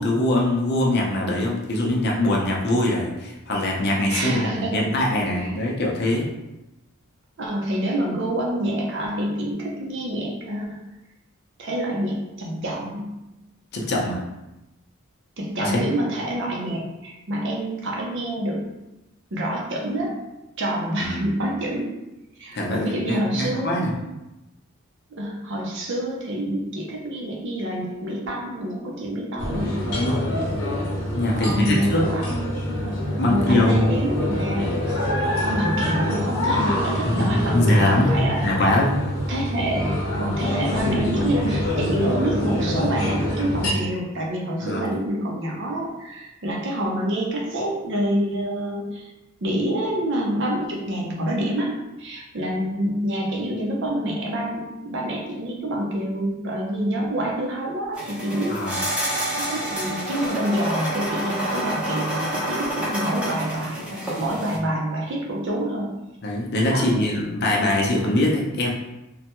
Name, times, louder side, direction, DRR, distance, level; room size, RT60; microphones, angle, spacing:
voice 1, 0.0-6.3 13.7-14.2 15.6-15.8 21.0-21.3 22.5-23.9 29.9-30.3 31.1-32.1 33.2-34.0 37.0-39.0 44.6-44.9 58.5-58.8 66.2-68.7, left 1 dB, 50° left, -1 dB, 0.6 m, -22 dB
voice 2, 4.1-4.9 5.4-5.5 7.4-10.8 11.6-13.3 15.4-18.6 19.3-20.2 20.6-21.9 22.4-24.1 25.1-30.1 31.3-32.8 33.3-34.7 35.1-38.5 39.3-49.1 49.4-65.9 66.7-67.2, right 1 dB, 55° right, -1 dB, 0.6 m, -27 dB
sound 1, 29.4-43.7, left 1 dB, 85° left, 0.8 m, -25 dB
sound 2, 57.9-64.6, right 1 dB, 5° right, 0.7 m, -28 dB
3.2 x 2.2 x 2.9 m, 0.96 s
head